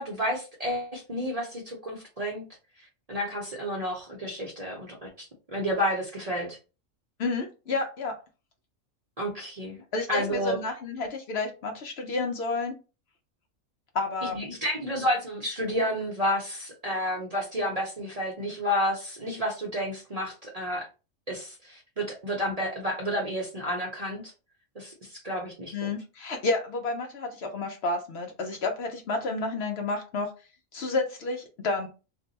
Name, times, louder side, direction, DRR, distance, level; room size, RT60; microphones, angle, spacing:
voice 1, 0.0-2.4 3.1-6.6 9.2-9.8 10.1-10.6 14.2-20.9 21.3-24.3 24.7-25.9, equal, 35° right, -1 dB, 0.7 m, -30 dB
voice 2, 7.2-8.2 9.9-12.8 13.9-14.4 25.7-30.3 30.7-31.9, left 3 dB, 60° left, 3 dB, 0.8 m, -30 dB
2.6 x 2.2 x 3.9 m, 0.31 s
omnidirectional pair, 1.4 m